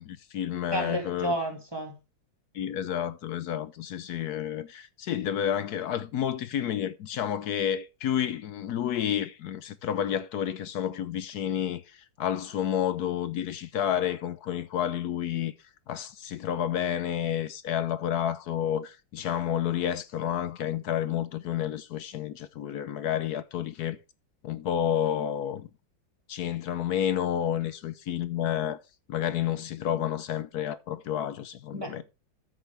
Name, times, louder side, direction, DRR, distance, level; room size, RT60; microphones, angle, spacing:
voice 1, 0.0-1.3 2.5-15.5 15.9-24.0 24.4-25.7 26.3-28.8 29.1-32.0, left 10 dB, 65° left, 1.0 m, -30 dB
voice 2, 0.7-2.0 31.7-32.0, right 1 dB, 10° right, 2.3 m, -31 dB
13.5 x 6.2 x 3.4 m
omnidirectional pair, 2.1 m